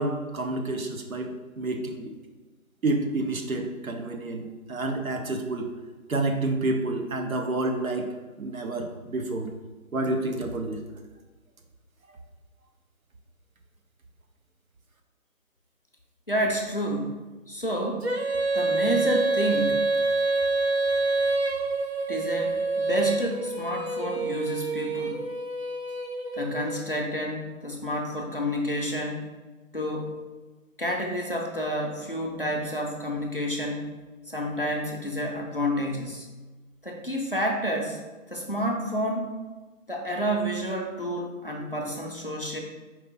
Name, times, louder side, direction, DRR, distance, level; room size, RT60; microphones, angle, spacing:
voice 1, 0.0-2.1 2.8-5.7 6.1-8.1 8.4-9.5 9.9-10.8, right 2 dB, 75° right, 4 dB, 0.8 m, -29 dB
voice 2, 16.3-17.2 17.5-18.1 18.5-19.9 22.1-25.2 26.3-29.3 29.7-30.2 30.8-33.9 34.3-36.3 36.8-38.0 38.3-39.3 39.9-42.6, equal, 40° left, 0 dB, 0.5 m, -29 dB
Female singing, 18.0-26.8, right 3 dB, 50° right, 0.5 m, -27 dB
4.5 x 2.9 x 3.8 m, 1.2 s
figure-of-eight pair, 165°, 43 cm